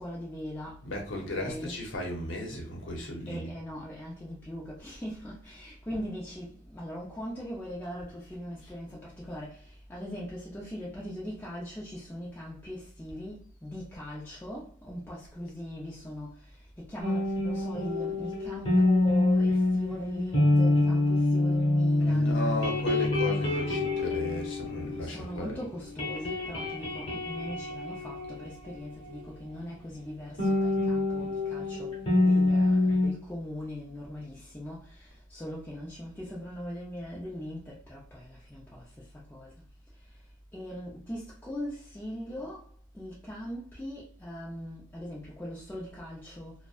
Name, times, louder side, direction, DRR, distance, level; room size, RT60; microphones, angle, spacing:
voice 1, 0.0-0.8 1.3-1.7 3.3-9.6 9.9-16.3 16.8-22.6 23.5-23.6 25.0-38.8 39.3-39.5 40.5-42.6 42.9-46.5, equal, 10° left, 0.5 m, -40 dB
voice 2, 0.8-3.5 8.6-8.7 22.0-25.6, left 1 dB, 80° left, 0.8 m, -36 dB
sound 1, 17.0-25.5 25.8-29.2 30.4-33.1, left 2 dB, 30° left, 1.0 m, -26 dB
2.5 x 2.1 x 2.3 m
head